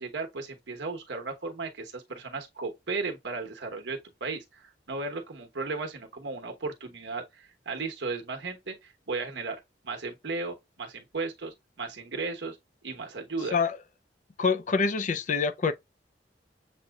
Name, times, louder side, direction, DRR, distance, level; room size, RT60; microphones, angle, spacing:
voice 1, 0.0-12.6 12.8-13.6, right 3 dB, 75° right, 1.1 m, -35 dB
voice 2, 14.4-15.7, left 4 dB, 45° left, 0.5 m, -26 dB
7.3 x 2.7 x 2.3 m
head